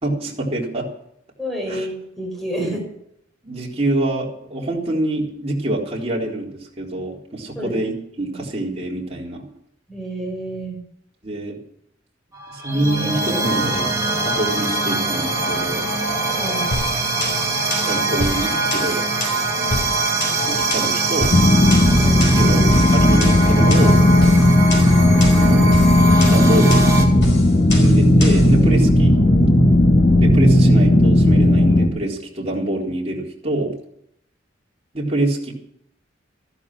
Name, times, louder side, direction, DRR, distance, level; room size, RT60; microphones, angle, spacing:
voice 1, 0.0-0.9 1.7-1.9 3.4-9.4 11.2-11.6 12.5-13.9 14.2-15.8 17.9-19.0 20.5-21.3 22.0-24.0 25.2-25.8 26.3-26.9 27.7-29.1 30.2-33.7 34.9-35.5, right 1 dB, 30° right, -2 dB, 4.0 m, -25 dB
voice 2, 1.4-2.9 7.5-7.7 8.2-8.4 9.9-10.8 16.3-16.7 19.5-20.0 21.9-22.3, right 1 dB, ahead, -1 dB, 5.3 m, -29 dB
sound 1, 12.3-27.1, right 2 dB, 15° right, 2.8 m, -23 dB
sound 2, 16.7-28.5, left 2 dB, 65° left, 5.1 m, -28 dB
sound 3, 21.3-31.9, left 1 dB, 45° left, 2.1 m, -14 dB
14.5 x 12.0 x 6.2 m, 0.73 s
head